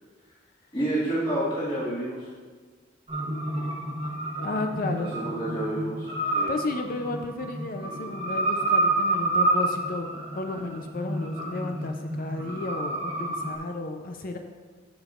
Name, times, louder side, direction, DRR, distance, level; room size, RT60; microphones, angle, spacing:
voice 1, 0.7-2.3 5.0-6.5, right 1 dB, 30° left, -11 dB, 1.9 m, -29 dB
sound 1, 3.1-13.5, right 2 dB, 30° right, 1.0 m, -29 dB
voice 2, 4.4-5.2 6.5-14.4, left 2 dB, 45° left, 5 dB, 0.5 m, -33 dB
13.5 x 5.2 x 2.5 m, 1.5 s
head